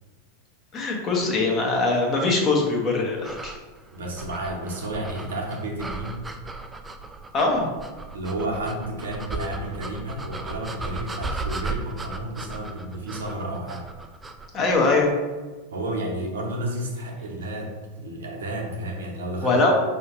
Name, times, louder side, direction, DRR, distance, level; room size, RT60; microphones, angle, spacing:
voice 1, 0.7-3.5 7.3-7.7 14.5-15.1 19.4-19.7, left 3 dB, 35° left, 0 dB, 1.0 m, -22 dB
sound 1, 3.2-15.1, right 3 dB, 15° right, 0.3 m, -36 dB
voice 2, 3.9-6.2 8.1-13.9 15.7-19.6, right 1 dB, 75° right, 0 dB, 0.8 m, -31 dB
4.7 x 2.7 x 3.0 m, 1.3 s
figure-of-eight pair, 90°, 0 cm